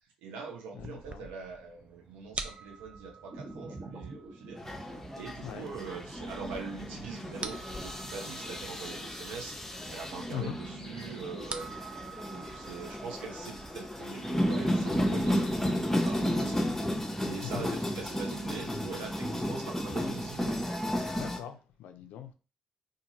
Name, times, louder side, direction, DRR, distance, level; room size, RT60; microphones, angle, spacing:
voice 1, 0.2-4.6 5.2-11.7 12.3-17.0 17.2-20.7, right 5 dB, 80° right, 0.7 m, -43 dB
voice 2, 0.7-1.3 5.4-5.7 10.3-10.6 17.4-17.7 21.2-22.3, left 10 dB, 70° left, 0.4 m, -41 dB
sound 1, 0.8-15.6, right 4 dB, 40° right, 0.4 m, -47 dB
sound 2, 3.3-20.3, right 2 dB, 60° right, 1.2 m, -46 dB
sound 3, 4.6-21.4, equal, 10° left, 0.6 m, -33 dB
2.6 x 2.5 x 2.8 m
hypercardioid pair, 45°, 3 cm